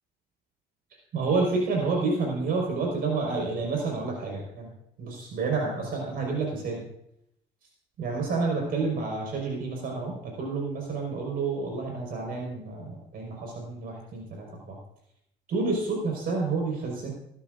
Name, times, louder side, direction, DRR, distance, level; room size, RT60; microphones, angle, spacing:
voice 1, 1.1-4.7 5.0-6.8 8.0-14.8 15.5-17.1, right 3 dB, 60° right, -1 dB, 4.9 m, -29 dB
18.5 x 13.5 x 2.6 m, 0.77 s
cardioid pair, 110°, 17 cm